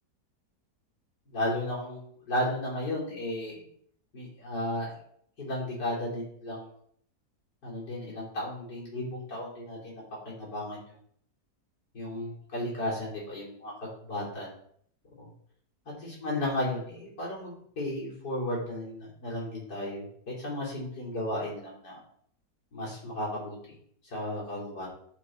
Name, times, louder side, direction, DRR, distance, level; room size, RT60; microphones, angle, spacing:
voice 1, 1.3-3.6 4.1-4.9 5.4-6.7 7.6-10.8 11.9-14.5 15.2-15.3 16.0-22.0 22.7-23.7 24.1-24.9, left 1 dB, 85° left, -6 dB, 3.9 m, -34 dB
11.0 x 3.8 x 4.5 m, 0.63 s
omnidirectional pair, 1.8 m